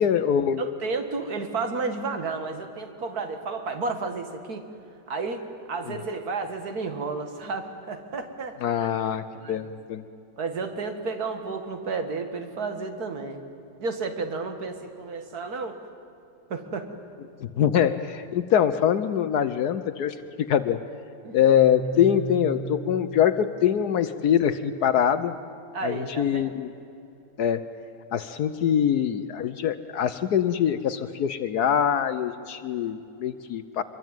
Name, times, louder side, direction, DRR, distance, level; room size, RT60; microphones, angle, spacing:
voice 1, 0.0-0.6 5.9-6.0 8.6-10.0 17.4-20.8 21.3-25.3 25.8-26.7 27.4-27.6 28.1-33.8, left 9 dB, 70° left, 11 dB, 1.3 m, -24 dB
voice 2, 0.6-4.6 5.1-8.6 9.3-9.7 10.4-13.4 13.8-15.8 16.5-16.9 21.2-21.4 25.7-26.5, right 4 dB, 60° right, 6 dB, 2.4 m, -32 dB
sound 1, 21.5-24.2, right 4 dB, 25° left, 2.9 m, -37 dB
24.5 x 23.5 x 9.1 m, 2.7 s
omnidirectional pair, 1.8 m